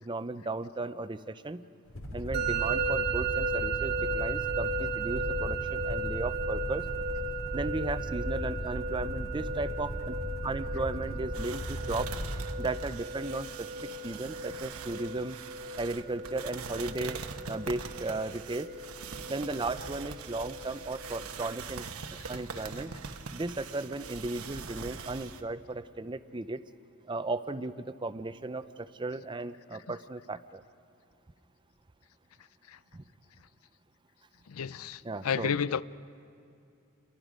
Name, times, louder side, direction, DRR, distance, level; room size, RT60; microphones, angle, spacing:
voice 1, 0.0-1.6 2.1-6.9 7.5-10.2 10.4-12.1 12.6-15.4 15.8-18.7 19.3-21.9 22.3-22.9 23.3-26.6 27.0-30.6 32.9-33.0 35.0-35.5, right 2 dB, 20° right, 12 dB, 0.5 m, -35 dB
sound 1, 1.9-12.5, equal, 70° left, 2.9 m, -37 dB
Musical instrument, 2.3-21.2, right 4 dB, 50° right, 1.0 m, -36 dB
sound 2, 11.3-25.4, right 5 dB, 85° right, 1.1 m, -43 dB
voice 2, 34.5-35.0 35.2-35.8, left 7 dB, 90° left, 17 dB, 0.5 m, -30 dB
29.5 x 23.0 x 5.1 m, 2.6 s
head